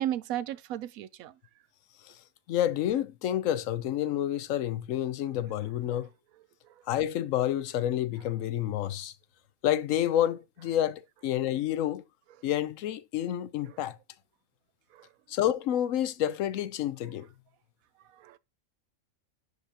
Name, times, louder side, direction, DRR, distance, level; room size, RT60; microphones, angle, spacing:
voice 1, 0.0-1.3 6.6-6.7 13.6-13.8 14.9-15.1 18.1-18.4, right 12 dB, 85° right, 1.0 m, -35 dB
voice 2, 2.5-6.1 6.9-9.1 9.6-12.0 12.4-14.0 15.3-17.3, left 11 dB, 75° left, 1.0 m, -29 dB
10.5 x 5.4 x 2.8 m
omnidirectional pair, 1.4 m